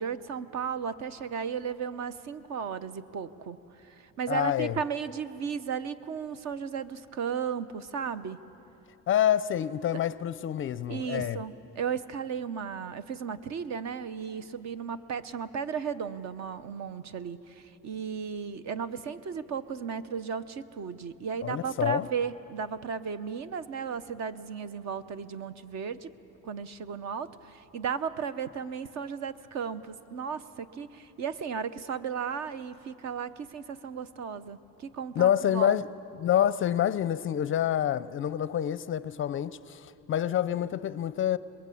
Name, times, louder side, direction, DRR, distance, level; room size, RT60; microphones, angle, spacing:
voice 1, 0.0-8.4 9.9-10.0 10.9-26.1 26.4-35.8, right 6 dB, 55° right, 0.9 m, -35 dB
voice 2, 4.3-4.8 9.1-11.4 21.4-22.1 35.2-35.9 36.2-41.4, left 10 dB, 40° left, 0.5 m, -27 dB
26.5 x 21.5 x 8.5 m
cardioid pair, 135°, 34 cm